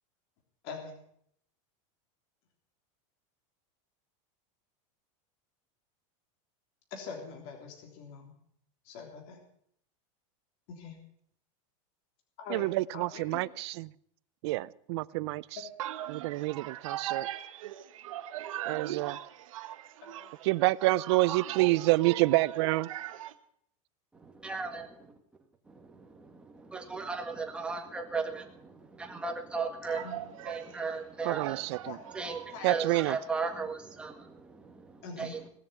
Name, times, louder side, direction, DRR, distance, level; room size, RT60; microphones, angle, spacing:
voice 1, 0.6-0.9 6.9-8.3 8.9-9.4 10.7-11.0 12.4-12.7 12.9-13.4 15.6-15.7 20.0-20.3 30.0-30.2 31.9-32.0 32.5-33.0 35.0-35.3, left 5 dB, 50° left, 3.5 m, -43 dB
voice 2, 12.5-13.9 14.4-15.6 16.1-17.2 18.7-19.1 20.4-22.9 31.2-32.0 32.6-33.2, right 20 dB, 55° right, 0.6 m, -28 dB
voice 3, 15.8-20.5 20.8-23.4 29.8-33.0, right 12 dB, 85° right, 1.5 m, -40 dB
voice 4, 24.2-25.1 25.7-30.1 30.5-31.5 32.1-35.5, right 4 dB, 5° right, 1.8 m, -37 dB
18.5 x 7.2 x 9.4 m
supercardioid pair, 165°, 17 cm